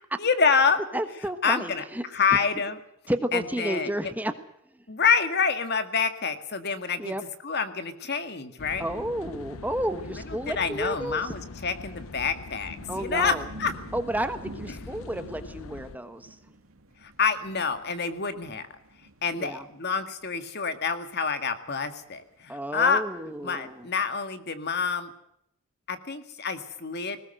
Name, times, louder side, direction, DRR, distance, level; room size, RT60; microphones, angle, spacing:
voice 1, 0.2-0.8 1.4-1.8 2.1-2.8 3.3-3.9 4.9-7.1 7.4-8.9 10.6-13.7 17.0-18.7 19.2-23.0 23.4-25.1 25.9-27.3, left 5 dB, 50° left, 9 dB, 2.0 m, -27 dB
voice 2, 0.9-2.0 3.1-4.3 7.0-7.2 8.8-11.3 12.9-13.5 13.9-16.4 19.3-19.6 22.5-23.9, right 1 dB, 10° right, 9 dB, 1.3 m, -31 dB
sound 1, 8.6-16.0, left 3 dB, 80° left, 0.8 m, -42 dB
sound 2, 9.1-23.9, right 2 dB, 90° right, 2.1 m, -50 dB
20.0 x 18.0 x 7.8 m, 0.76 s
head